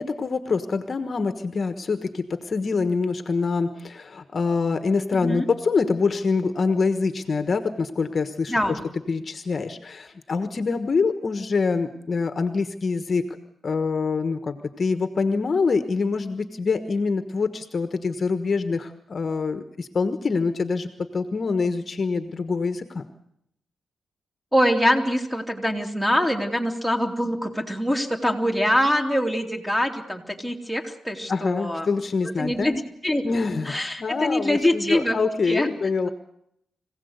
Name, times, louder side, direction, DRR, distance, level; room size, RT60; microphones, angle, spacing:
voice 1, 0.0-8.8 9.1-13.4 13.6-23.1 31.3-32.8 33.2-36.1, left 4 dB, 40° left, 9 dB, 1.3 m, -25 dB
voice 2, 8.5-8.8 24.5-31.9 32.2-33.3 33.7-35.2 35.5-35.7 36.0-36.1, equal, ahead, 4 dB, 3.0 m, -24 dB
25.5 x 16.5 x 8.1 m, 0.75 s
cardioid pair, 105°, 0 cm